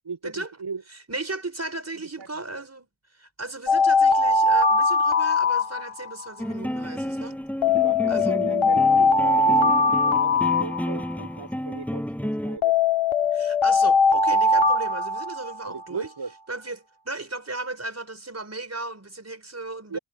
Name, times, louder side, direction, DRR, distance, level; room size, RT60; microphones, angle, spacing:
voice 1, 0.0-0.8 1.9-2.6 7.7-12.0 12.4-12.7 15.6-16.3 19.9-20.0, right 5 dB, 55° right, 4.9 m, -36 dB
voice 2, 0.9-7.4 8.1-8.4 13.3-16.1 16.5-20.0, right 2 dB, 30° right, 4.5 m, -36 dB
Alarm, 3.7-6.3 7.6-11.3 12.6-15.8, left 3 dB, 75° left, 2.2 m, -21 dB
sound 1, 6.4-12.6, equal, 5° left, 6.8 m, -31 dB
wide cardioid pair, 95°, 49 cm